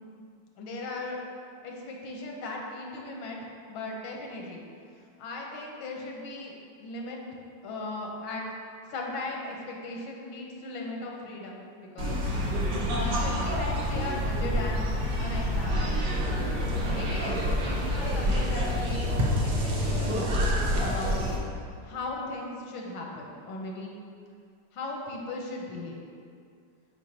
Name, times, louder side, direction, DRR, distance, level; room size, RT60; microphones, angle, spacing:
voice 1, 0.6-1.2 1.6-3.4 3.7-4.7 5.2-6.5 6.8-7.2 7.6-8.5 8.9-12.2 12.9-14.9 15.2-16.0 16.9-19.1 19.4-21.2 21.8-23.9 24.7-26.0, left 2 dB, 90° left, -1 dB, 1.7 m, -37 dB
sound 1, 12.0-21.4, equal, 65° right, 1.5 m, -27 dB
8.1 x 4.9 x 2.8 m, 2.3 s
omnidirectional pair, 2.2 m